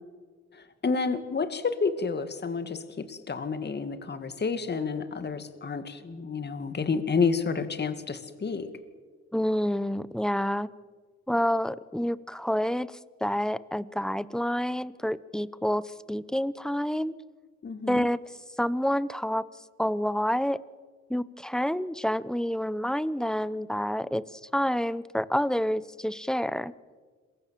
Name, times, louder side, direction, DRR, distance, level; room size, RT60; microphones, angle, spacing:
voice 1, 0.5-8.7 17.6-18.1, left 5 dB, 35° left, 10 dB, 2.3 m, -30 dB
voice 2, 9.3-10.7 11.3-17.1 17.9-18.2 18.6-19.4 19.8-20.6 21.1-26.7, equal, ahead, 17 dB, 0.9 m, -28 dB
27.0 x 23.0 x 7.7 m, 1.5 s
cardioid pair, 90°, 30 cm